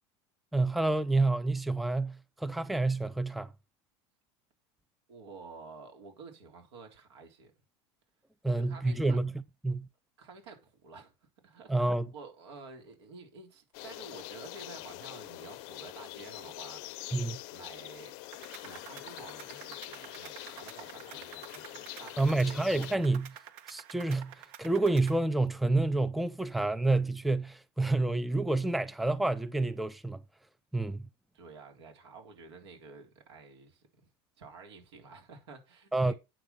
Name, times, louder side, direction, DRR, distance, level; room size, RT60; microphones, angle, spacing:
voice 1, 0.5-3.5 8.4-9.3 9.6-9.9 11.7-12.1 17.1-17.4 22.2-23.3 23.7-24.3 24.6-30.2 30.7-31.0 35.9-36.1, right 2 dB, ahead, 0.5 m, -28 dB
voice 2, 5.1-7.5 8.5-9.2 10.2-11.1 11.4-11.7 12.1-17.2 17.5-18.2 18.6-22.6 31.3-34.1 34.4-36.2, right 4 dB, 85° right, 3.6 m, -50 dB
sound 1, 13.7-22.9, left 20 dB, 60° left, 0.6 m, -44 dB
sound 2, 18.3-25.2, right 10 dB, 70° right, 1.5 m, -50 dB
8.8 x 6.3 x 5.3 m
supercardioid pair, 125°, 14 cm